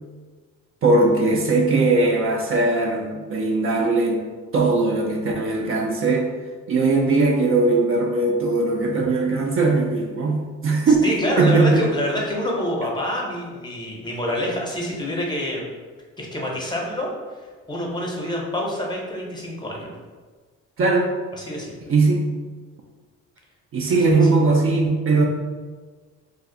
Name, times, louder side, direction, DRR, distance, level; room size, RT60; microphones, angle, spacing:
voice 1, 0.8-4.3 4.5-6.3 6.7-11.9 20.8-21.1 21.9-22.3 23.7-25.2, right 3 dB, 45° right, 0 dB, 0.4 m, -19 dB
voice 2, 10.9-15.6 16.2-17.1 17.7-19.9 21.4-21.9 24.1-24.3, left 1 dB, 15° left, -2 dB, 0.7 m, -27 dB
2.5 x 2.3 x 3.7 m, 1.4 s
cardioid pair, 90°, 30 cm